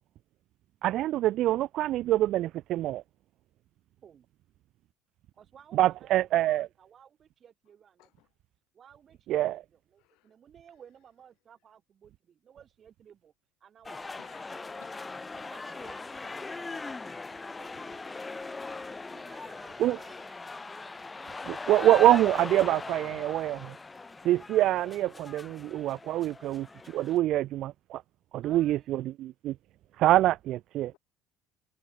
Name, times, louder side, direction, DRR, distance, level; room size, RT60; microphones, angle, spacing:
voice 1, 0.8-3.0 5.7-6.7 9.3-9.6 19.8-20.0 21.4-23.8 24.2-28.0 28.3-29.6 30.0-30.9, right 14 dB, 50° right, 0.7 m, -25 dB
voice 2, 5.3-8.1 8.7-13.3 13.6-14.8 15.5-17.0 17.4-20.7 28.4-29.1, right 8 dB, 30° right, 3.0 m, -57 dB
voice 3, 8.0-8.3 10.0-10.3 14.2-15.3 23.0-23.2, left 24 dB, 75° left, 6.2 m, -59 dB
sound 1, 13.9-27.2, left 3 dB, 15° left, 3.2 m, -40 dB
cardioid pair, 155°, 0 cm